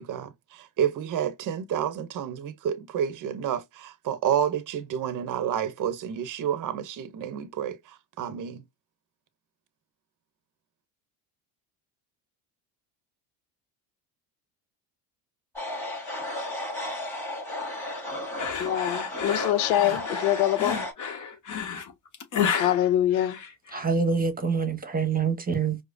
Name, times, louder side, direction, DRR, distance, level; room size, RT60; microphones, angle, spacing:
voice 1, 0.0-8.6, right 9 dB, 40° right, 0.7 m, -30 dB
sound 1, 15.6-20.9, left 1 dB, 5° left, 1.7 m, -33 dB
sound 2, 18.4-23.9, left 7 dB, 35° left, 1.0 m, -32 dB
voice 2, 18.6-20.8 22.6-23.4, left 12 dB, 90° left, 0.6 m, -24 dB
voice 3, 23.7-25.8, right 5 dB, 15° right, 1.0 m, -26 dB
4.8 x 2.0 x 2.5 m
supercardioid pair, 90°, 50 cm